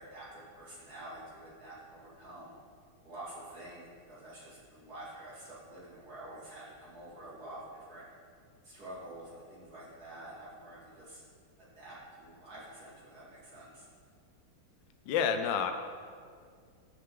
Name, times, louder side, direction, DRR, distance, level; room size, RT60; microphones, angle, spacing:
voice 1, 0.0-2.5 3.0-8.1 8.6-11.2 11.6-13.9, right 1 dB, 45° right, -8 dB, 3.1 m, -48 dB
voice 2, 15.1-15.7, left 7 dB, 65° left, 6 dB, 1.3 m, -28 dB
15.0 x 6.1 x 3.9 m, 2.2 s
omnidirectional pair, 2.4 m